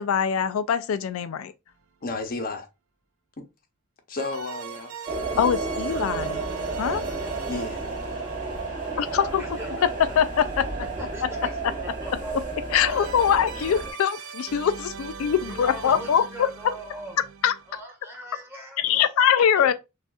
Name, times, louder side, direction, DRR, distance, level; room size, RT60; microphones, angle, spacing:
voice 1, 0.0-1.5 5.4-6.4 6.8-7.0 9.0-9.4 10.2-10.6 12.7-16.5 17.4-17.5 18.8-19.7, left 8 dB, 75° left, 0.3 m, -23 dB
sound 1, 1.7-1.8 4.2-10.2 12.8-17.8, right 6 dB, 85° right, 0.5 m, -41 dB
voice 2, 2.0-2.7 4.1-5.1 7.5-7.9, left 2 dB, 45° left, 0.7 m, -32 dB
sound 2, 5.1-13.9, right 3 dB, 40° right, 1.8 m, -32 dB
voice 3, 9.4-9.9 10.8-12.6 12.9-13.9 15.4-17.3 17.7-19.3 19.5-19.7, equal, 10° right, 1.4 m, -41 dB
6.1 x 2.4 x 2.3 m
head